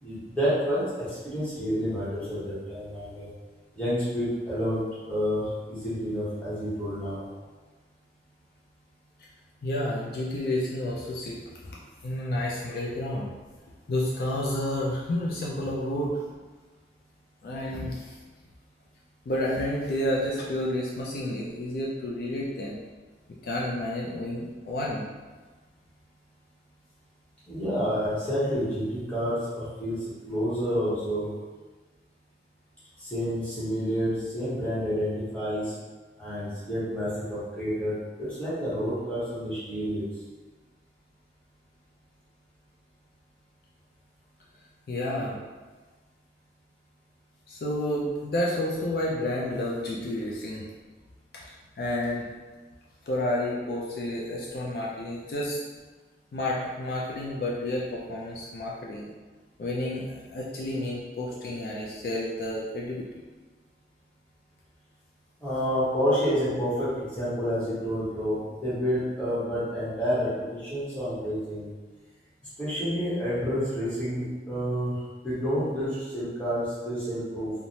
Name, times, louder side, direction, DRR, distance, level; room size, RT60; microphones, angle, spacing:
voice 1, 0.0-3.3 3.7-4.8 5.1-7.2 27.5-31.3 33.0-35.7 36.2-40.0 65.4-71.7 72.6-75.0 75.2-77.5, equal, 5° left, -12 dB, 0.9 m, -29 dB
voice 2, 9.6-11.4 12.0-13.3 13.9-16.2 17.4-18.2 19.3-22.8 23.4-25.0 44.9-45.4 47.5-50.6 51.3-52.3 53.1-55.6 56.3-59.1 59.6-63.0, left 1 dB, 55° left, -4 dB, 0.3 m, -30 dB
3.1 x 2.0 x 2.6 m, 1.3 s
head